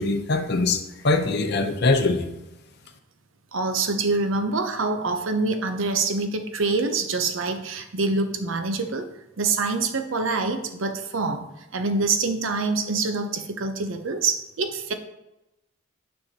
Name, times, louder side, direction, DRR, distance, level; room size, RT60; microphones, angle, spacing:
voice 1, 0.0-2.3, left 3 dB, 55° left, 6 dB, 0.7 m, -22 dB
voice 2, 3.5-9.1 9.4-14.9, right 3 dB, 75° right, 7 dB, 0.7 m, -25 dB
9.2 x 5.6 x 2.8 m, 0.95 s
head